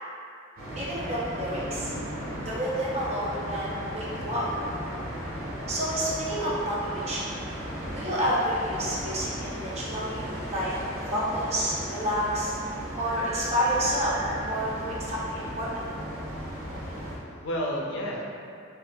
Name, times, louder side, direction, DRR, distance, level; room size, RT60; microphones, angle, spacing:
sound 1, 0.6-17.1, equal, 85° right, 0.8 m, -36 dB
voice 1, 0.8-1.9 2.4-4.4 5.7-7.3 7.9-10.7 11.0-12.5 13.0-14.2 14.5-15.7, equal, 30° right, -7 dB, 0.6 m, -29 dB
sound 2, 13.1-14.4 15.4-15.5, equal, 15° right, 1.4 m, -38 dB
voice 2, 16.8-18.2, equal, 65° left, -2 dB, 0.4 m, -32 dB
2.5 x 2.3 x 3.6 m, 2.4 s
head